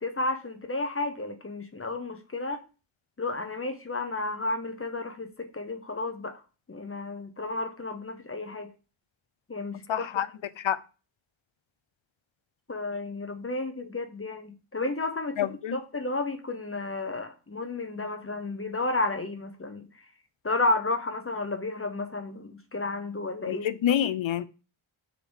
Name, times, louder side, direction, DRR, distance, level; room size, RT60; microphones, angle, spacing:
voice 1, 0.0-2.6 3.2-6.3 6.7-8.7 9.5-10.1 12.7-19.8 20.4-23.7, left 2 dB, 25° left, 0.8 m, -32 dB
voice 2, 9.9-10.3 10.6-10.8 15.4-15.8 23.5-24.4, left 10 dB, 70° left, 0.6 m, -27 dB
6.8 x 3.8 x 6.3 m
wide cardioid pair, 145°, 49 cm